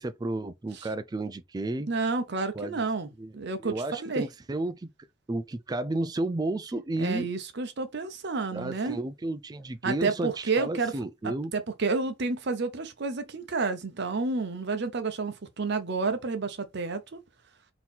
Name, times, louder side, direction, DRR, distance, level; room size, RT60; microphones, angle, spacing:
voice 1, 0.0-1.9 2.5-2.8 3.2-3.3 3.6-4.9 5.3-7.3 8.5-11.5, right 2 dB, 20° right, 0.3 m, -32 dB
voice 2, 1.9-4.3 7.0-9.0 9.8-10.9 11.2-17.2, right 4 dB, 55° right, 0.7 m, -30 dB
3.9 x 2.8 x 4.1 m
head